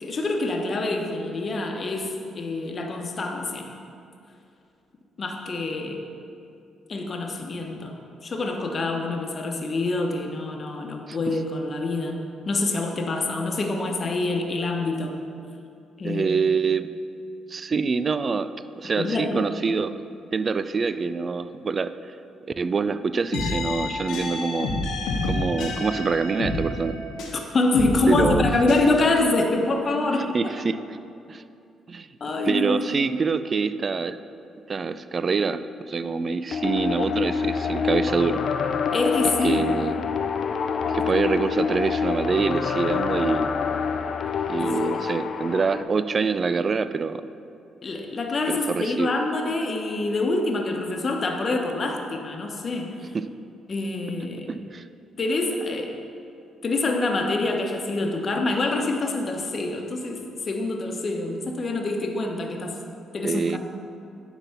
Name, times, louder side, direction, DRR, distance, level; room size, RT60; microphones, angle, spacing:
voice 1, 0.0-3.7 5.2-6.0 6.9-12.2 12.5-15.2 16.0-16.3 19.0-19.5 27.3-30.5 32.2-32.8 38.9-39.6 44.6-44.7 47.8-52.9 53.7-54.5 55.2-55.9 56.6-62.8 63.1-63.6, left 2 dB, 40° left, 2 dB, 1.0 m, -26 dB
voice 2, 16.0-16.9 17.5-18.5 18.8-19.9 20.3-21.9 22.6-24.8 25.2-27.0 28.1-28.4 30.3-31.0 31.3-31.4 31.9-32.1 32.4-34.2 34.7-35.6 35.9-38.4 39.2-40.0 40.8-43.5 44.5-47.2 48.5-49.1 53.1-53.2 54.5-54.8 63.2-63.6, right 5 dB, 40° right, 12 dB, 0.3 m, -25 dB
sound 1, 23.3-27.4 27.7-28.8, left 2 dB, 90° left, 1.2 m, -28 dB
sound 2, 36.5-45.8, left 6 dB, 55° left, 0.4 m, -26 dB
10.5 x 4.1 x 5.7 m, 2.6 s
cardioid pair, 90°, 0 cm